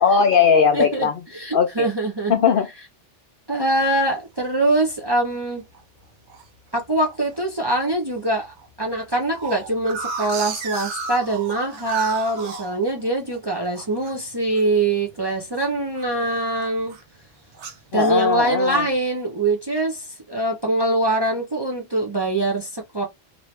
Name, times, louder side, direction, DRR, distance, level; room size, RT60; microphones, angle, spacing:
voice 1, 0.0-1.1 1.5-1.9 2.3-2.7 17.9-18.9, left 6 dB, 60° left, 0.6 m, -18 dB
voice 2, 0.7-1.1 1.3-2.3 3.5-5.6 6.7-16.9 17.9-23.0, right 2 dB, 30° right, 0.5 m, -23 dB
sound 1, 3.8-4.2 4.7-4.8 5.0-5.4 5.7-6.5 7.0-7.4 7.8-7.9 8.1-8.2 8.6-13.4 13.7-16.3 16.5-17.1 17.5-18.9, right 4 dB, 75° right, 1.0 m, -35 dB
3.0 x 2.6 x 3.1 m
omnidirectional pair, 1.2 m